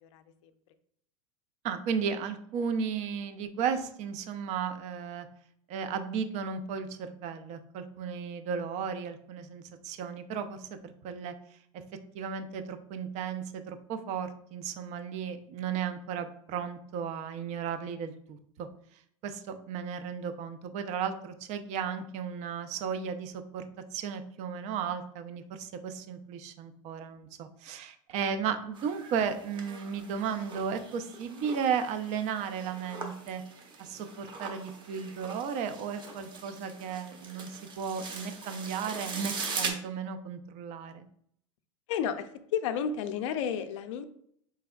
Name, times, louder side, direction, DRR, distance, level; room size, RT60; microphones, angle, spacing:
voice 1, 0.0-0.5 41.9-44.1, left 8 dB, 60° left, 10 dB, 0.5 m, -32 dB
voice 2, 1.6-5.3 5.7-11.3 12.1-18.7 19.2-23.6 23.9-33.4 33.8-41.1, right 7 dB, 45° right, 9 dB, 0.5 m, -34 dB
sound 1, 28.7-39.7, right 4 dB, 25° right, 0.9 m, -41 dB
4.2 x 3.3 x 2.3 m, 0.67 s
hypercardioid pair, 105°, 17 cm